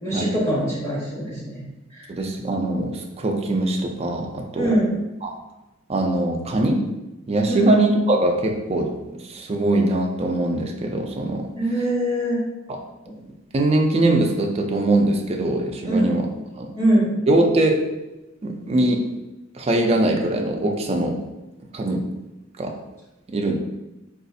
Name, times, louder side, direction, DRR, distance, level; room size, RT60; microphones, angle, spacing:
voice 1, 0.0-1.6 1.9-2.1 4.5-4.9 7.5-7.7 11.6-12.4 15.9-16.1 16.7-17.1, right 1 dB, 15° left, -9 dB, 1.4 m, -22 dB
voice 2, 2.1-4.7 5.2-5.4 5.9-6.8 7.3-11.5 12.7-12.8 13.5-16.2 16.5-16.7 17.3-17.8 18.4-19.0 19.5-21.2 21.7-22.0 22.6-22.7 23.3-23.5, right 2 dB, 30° right, 2 dB, 0.4 m, -22 dB
3.9 x 2.4 x 2.6 m, 1.0 s
head